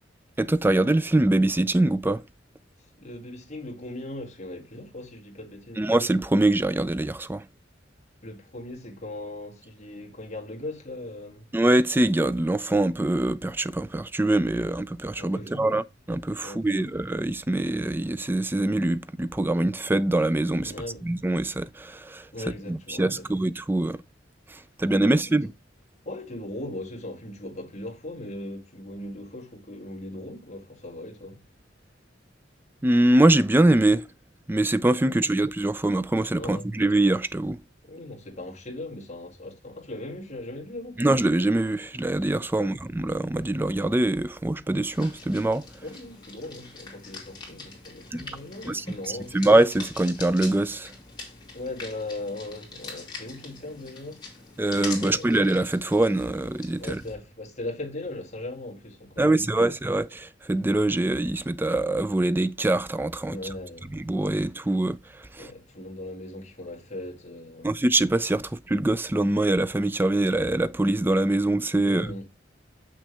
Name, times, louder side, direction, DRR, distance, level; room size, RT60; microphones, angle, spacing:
voice 1, 0.4-2.2 5.8-7.4 11.5-20.7 21.0-22.2 22.7-24.0 24.8-25.5 32.8-34.0 34.5-37.6 41.0-45.6 48.1-48.2 48.7-48.8 49.3-50.9 54.6-57.0 59.2-63.4 63.9-65.0 65.4-65.5 67.6-72.1, right 1 dB, 10° right, 0.4 m, -23 dB
voice 2, 3.0-5.9 8.2-11.5 15.2-15.8 16.4-16.9 20.6-21.0 22.3-23.3 25.0-25.4 26.0-31.4 35.1-35.3 36.4-36.7 37.8-41.0 42.5-42.7 44.5-44.6 45.8-49.4 51.5-54.3 55.0-55.3 56.8-59.7 63.3-63.9 65.4-67.7 71.8-72.3, left 1 dB, 40° left, 2.0 m, -39 dB
sound 1, 44.9-57.1, left 4 dB, 25° left, 2.8 m, -43 dB
7.1 x 6.2 x 3.4 m
head